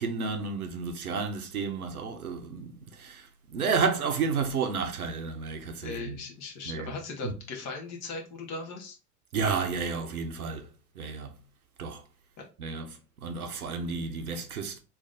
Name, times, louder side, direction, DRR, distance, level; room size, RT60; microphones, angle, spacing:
voice 1, 0.0-6.2 6.7-7.0 9.3-10.7 11.0-11.4 11.8-12.0 12.6-12.9 13.2-14.8, right 5 dB, 80° right, 0.8 m, -31 dB
voice 2, 5.8-9.0, left 4 dB, 35° left, 1.2 m, -38 dB
3.3 x 2.6 x 3.7 m
figure-of-eight pair, 75°, 44 cm